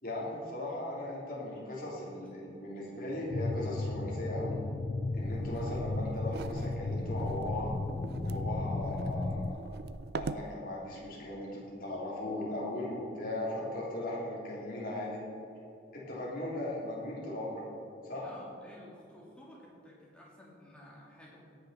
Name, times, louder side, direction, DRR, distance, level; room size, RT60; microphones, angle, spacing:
voice 1, 0.0-4.6 5.1-7.7 8.2-9.6 10.1-15.2 15.9-17.6 18.0-18.3, left 1 dB, 45° left, -5 dB, 3.4 m, -38 dB
sound 1, 3.3-9.5, left 2 dB, 30° left, 0.3 m, -35 dB
sound 2, 5.2-10.5, right 4 dB, 55° right, 0.4 m, -43 dB
voice 2, 18.2-21.4, left 1 dB, 5° left, -5 dB, 2.6 m, -53 dB
18.0 x 6.8 x 5.7 m, 2.8 s
head